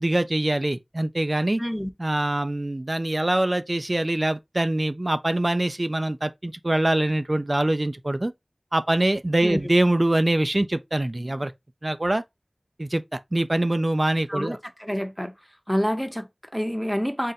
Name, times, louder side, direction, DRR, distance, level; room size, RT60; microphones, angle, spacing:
voice 1, 0.0-1.6 2.0-8.3 8.7-11.5 11.8-12.2 12.8-14.6, right 1 dB, 50° right, 0.3 m, -24 dB
voice 2, 1.6-1.9 9.4-9.6 14.3-15.3 15.7-17.3, equal, 5° left, 0.6 m, -27 dB
3.7 x 2.1 x 4.0 m
wide cardioid pair, 40°, 0 cm